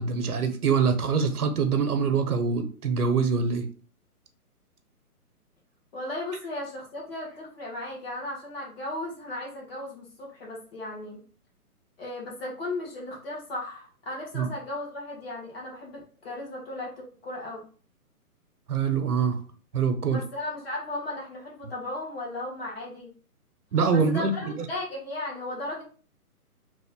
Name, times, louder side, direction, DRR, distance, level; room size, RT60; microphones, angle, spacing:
voice 1, 0.0-3.7 14.3-14.5 18.7-19.4 19.7-20.2 23.7-24.7, right 5 dB, 75° right, 7 dB, 0.9 m, -24 dB
voice 2, 5.9-11.2 12.0-17.6 20.0-23.1 23.9-25.8, left 2 dB, 40° left, -3 dB, 1.4 m, -36 dB
3.1 x 2.4 x 3.6 m, 0.40 s
hypercardioid pair, 165°, 45 cm